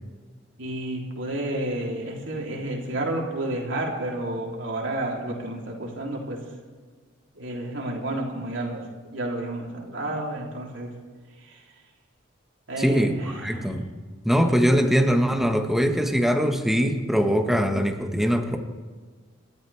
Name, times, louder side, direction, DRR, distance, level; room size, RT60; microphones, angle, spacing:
voice 1, 0.6-6.4 7.3-8.8 9.1-10.9 11.4-11.6 12.7-13.7 18.2-18.3, right 1 dB, 75° right, -2 dB, 3.5 m, -31 dB
voice 2, 12.8-13.9 14.2-18.6, equal, ahead, 4 dB, 1.5 m, -22 dB
29.0 x 13.5 x 3.5 m, 1.5 s
head